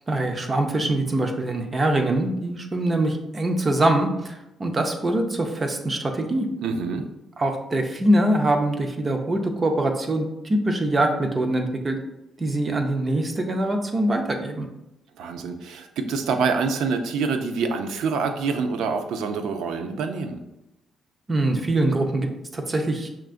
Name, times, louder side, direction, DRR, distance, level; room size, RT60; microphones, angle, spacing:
voice 1, 0.1-6.5 7.4-12.0 12.4-14.7 21.3-23.1, right 1 dB, 30° right, 5 dB, 0.5 m, -23 dB
voice 2, 6.6-7.1 15.2-20.4, right 5 dB, 80° right, 7 dB, 0.4 m, -26 dB
5.7 x 2.5 x 2.4 m, 0.91 s
cardioid pair, 90°, 0 cm